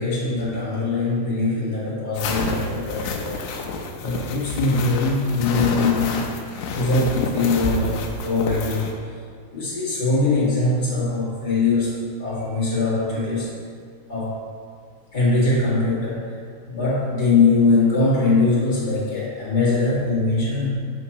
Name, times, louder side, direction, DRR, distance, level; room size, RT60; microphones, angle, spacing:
voice 1, 0.0-3.4 4.0-6.3 6.7-8.8 9.5-13.5 14.1-14.4 15.1-16.4 16.6-20.9, left 3 dB, 35° left, -9 dB, 0.7 m, -22 dB
sound 1, 2.1-8.9, left 3 dB, 85° left, 2.6 m, -29 dB
9.6 x 6.5 x 2.9 m, 2.2 s
omnidirectional pair, 4.8 m